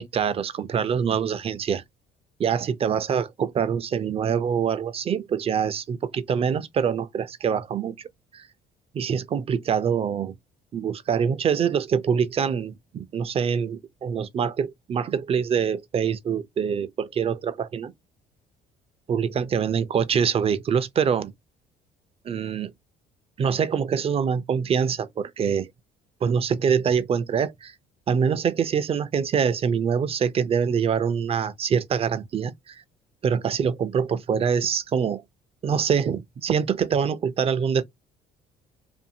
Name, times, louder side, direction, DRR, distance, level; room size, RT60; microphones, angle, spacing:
voice 1, 0.0-1.8 2.4-7.9 8.3-8.4 8.9-10.3 10.7-17.9 19.1-21.3 22.2-22.7 23.4-25.7 26.2-27.7 28.1-32.8 33.2-35.2 35.6-37.8, right 7 dB, 35° right, 0.4 m, -25 dB
2.6 x 2.6 x 2.7 m
cardioid pair, 110°, 17 cm